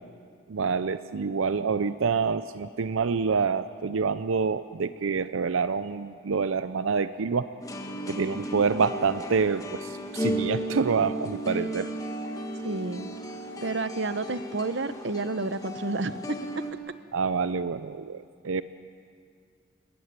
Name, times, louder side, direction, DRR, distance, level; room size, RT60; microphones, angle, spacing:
voice 1, 0.5-7.5 8.1-11.9 17.1-18.6, right 5 dB, 90° right, 13 dB, 0.6 m, -27 dB
sound 1, 7.6-16.7, equal, 15° left, 1.8 m, -35 dB
voice 2, 12.6-13.1 13.6-16.2, right 3 dB, 60° right, 13 dB, 0.9 m, -30 dB
29.0 x 15.0 x 9.7 m, 2.3 s
head